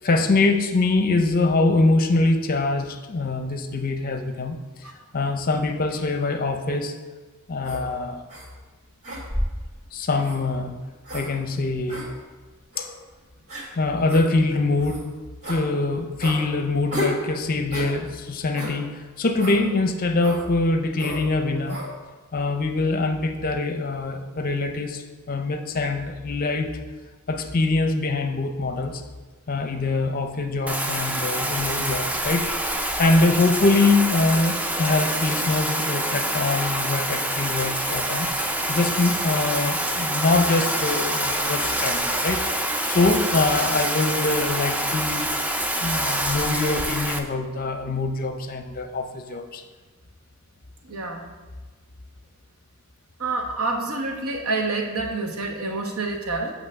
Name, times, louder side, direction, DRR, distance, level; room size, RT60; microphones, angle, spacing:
voice 1, 0.0-4.6 5.1-6.9 7.5-8.2 9.9-10.8 11.1-12.1 12.8-12.9 13.7-15.1 15.5-21.8 22.3-26.7 27.3-29.0 29.5-45.3 45.8-49.6, left 3 dB, 40° left, 7 dB, 0.6 m, -24 dB
sound 1, 7.6-7.8 8.3-8.5 9.0-9.6 10.2-10.4 11.0-11.3 11.9-12.1 12.7-12.9 13.5-13.7 14.1-14.2 14.8-15.0 15.4-15.6 16.2-16.4 16.9-17.2 17.7-17.9 18.6-18.8 19.4-19.6 20.2-20.4 21.0-21.2 21.7-21.9, left 1 dB, 35° right, 1.9 m, -31 dB
Bathtub (filling or washing), 30.7-47.2, right 1 dB, 5° right, 0.4 m, -26 dB
voice 2, 50.8-51.2 53.2-56.5, right 3 dB, 80° right, 2 dB, 1.1 m, -27 dB
8.8 x 3.1 x 6.4 m, 1.3 s
head